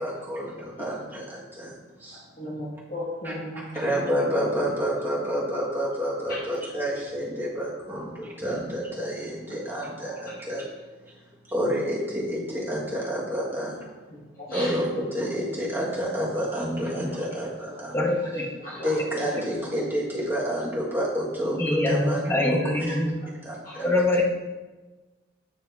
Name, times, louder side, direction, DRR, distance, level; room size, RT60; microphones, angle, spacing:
voice 1, 0.0-1.7 2.0-2.2 3.2-3.3 3.8-10.6 11.5-13.7 14.5-14.8 15.1-17.9 18.8-23.0 23.4-23.9, equal, 10° right, -6 dB, 1.6 m, -29 dB
voice 2, 0.5-0.9 2.1-3.8 4.2-4.4 6.3-6.4 7.9-8.4 9.5-10.2 12.7-12.8 13.5-13.6 14.1-15.0 17.3-17.4 17.7-17.8 18.6-18.9 19.3-19.4 21.9-22.0 23.6-23.9, left 1 dB, 45° left, -8 dB, 1.2 m, -38 dB
voice 3, 17.9-18.5 21.6-23.2 23.8-24.2, left 1 dB, 10° left, 0 dB, 0.8 m, -24 dB
9.3 x 3.4 x 3.5 m, 1.2 s
head